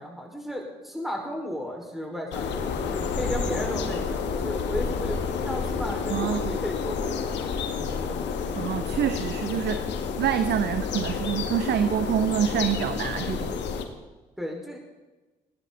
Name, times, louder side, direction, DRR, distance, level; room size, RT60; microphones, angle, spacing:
voice 1, 0.0-8.3 14.4-14.8, equal, ahead, 0 dB, 4.9 m, -34 dB
sound 1, 2.3-13.8, left 5 dB, 65° left, 1.9 m, -30 dB
voice 2, 6.1-6.5 8.5-9.9 10.2-13.6, right 9 dB, 60° right, 11 dB, 1.0 m, -26 dB
19.5 x 17.0 x 4.1 m, 1.2 s
hypercardioid pair, 45°, 20 cm